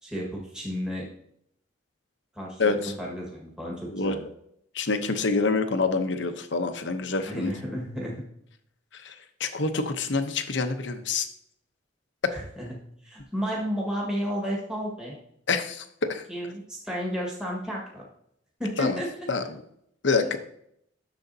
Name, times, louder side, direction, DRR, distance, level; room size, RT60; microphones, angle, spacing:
voice 1, 0.0-1.0 2.3-4.3 7.2-8.2 12.3-12.7 13.0-15.2 16.3-18.0 18.6-19.1 20.2-20.4, equal, 5° right, -4 dB, 1.6 m, -32 dB
voice 2, 2.6-2.9 3.9-4.2 4.7-7.5 9.0-9.1 9.4-11.3 15.5-16.2 18.8-19.0 19.3-19.4 20.0-20.4, left 4 dB, 70° left, 8 dB, 0.8 m, -26 dB
10.5 x 7.0 x 2.7 m, 0.71 s
head